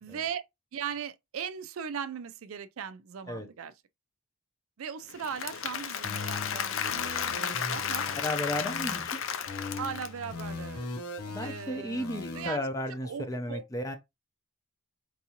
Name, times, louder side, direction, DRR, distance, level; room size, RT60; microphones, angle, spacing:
voice 1, 0.0-0.4 0.7-3.7 4.8-8.1 9.8-10.9 11.4-12.1 12.3-12.7 13.0-13.6, right 7 dB, 70° right, 0.4 m, -38 dB
Applause / Crowd, 5.1-10.4, left 8 dB, 65° left, 0.4 m, -33 dB
sound 1, 6.0-9.0 9.5-12.5, left 3 dB, 90° left, 0.8 m, -39 dB
voice 2, 8.1-9.2 11.3-14.0, left 1 dB, 15° left, 0.5 m, -34 dB
4.7 x 2.6 x 2.8 m
head